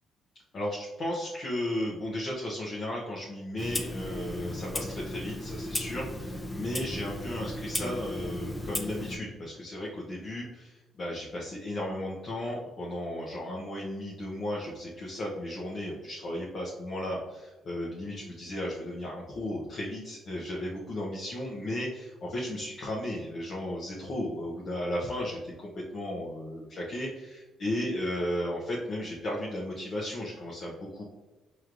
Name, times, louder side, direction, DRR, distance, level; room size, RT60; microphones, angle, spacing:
voice 1, 0.5-31.1, left 1 dB, 50° left, -4 dB, 0.7 m, -35 dB
Clock, 3.6-9.2, left 1 dB, 15° left, 0.5 m, -35 dB
4.6 x 3.1 x 2.5 m, 1.2 s
cardioid pair, 90°, 0 cm